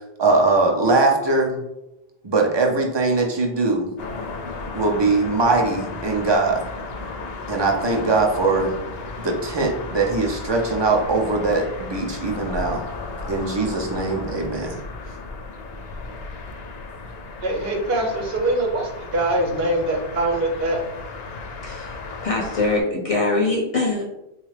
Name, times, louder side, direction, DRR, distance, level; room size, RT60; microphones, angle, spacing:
voice 1, 0.2-1.6 2.2-3.9 4.7-6.6 7.5-8.8 9.2-12.9 13.3-14.8, right 3 dB, 35° right, 1 dB, 0.5 m, -21 dB
sound 1, 4.0-22.8, left 3 dB, 75° left, 0.8 m, -34 dB
voice 2, 17.4-20.8, right 1 dB, 70° right, 1 dB, 0.9 m, -23 dB
voice 3, 21.6-21.9 22.2-24.1, left 2 dB, 45° left, -2 dB, 0.5 m, -22 dB
3.9 x 2.4 x 3.2 m, 0.91 s
omnidirectional pair, 1.1 m